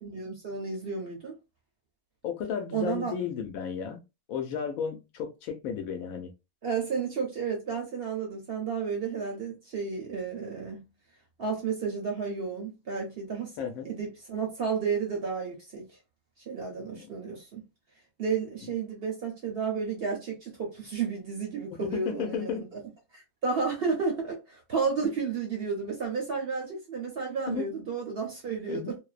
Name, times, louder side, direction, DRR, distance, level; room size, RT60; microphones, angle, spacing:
voice 1, 0.0-1.4 2.7-3.1 6.6-10.9 11.4-13.6 13.8-15.9 16.5-17.6 18.2-22.7 23.1-29.0, right 5 dB, 55° right, 0.7 m, -32 dB
voice 2, 2.2-4.0 4.3-6.3 13.6-13.9 16.9-17.1 21.8-22.6 27.5-27.7 28.7-28.9, left 7 dB, 75° left, 1.0 m, -33 dB
2.5 x 2.1 x 2.3 m
omnidirectional pair, 1.5 m